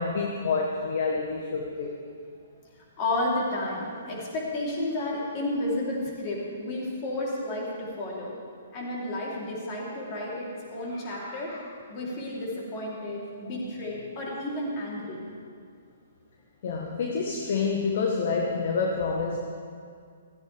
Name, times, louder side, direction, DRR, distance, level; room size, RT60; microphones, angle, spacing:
voice 1, 0.0-2.0 16.6-19.4, left 4 dB, 50° left, 1 dB, 1.3 m, -28 dB
voice 2, 3.0-8.3 8.7-15.2, left 1 dB, 30° left, -4 dB, 3.6 m, -32 dB
16.0 x 14.5 x 3.5 m, 2.2 s
figure-of-eight pair, 120°, 0 cm